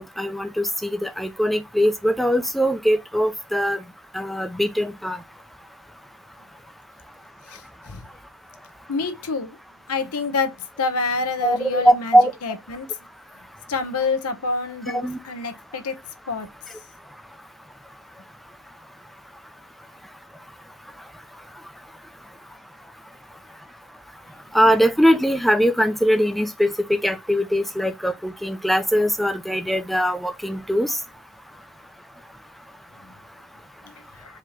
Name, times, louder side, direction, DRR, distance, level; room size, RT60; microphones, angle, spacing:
voice 1, 0.0-3.8 4.1-5.2 11.4-12.3 14.9-15.2 24.5-31.0, equal, ahead, 0.5 m, -21 dB
voice 2, 8.9-9.6 9.9-10.5 10.8-12.9 13.7-15.9 16.3-16.5, left 4 dB, 85° left, 0.9 m, -27 dB
4.7 x 3.0 x 3.6 m
head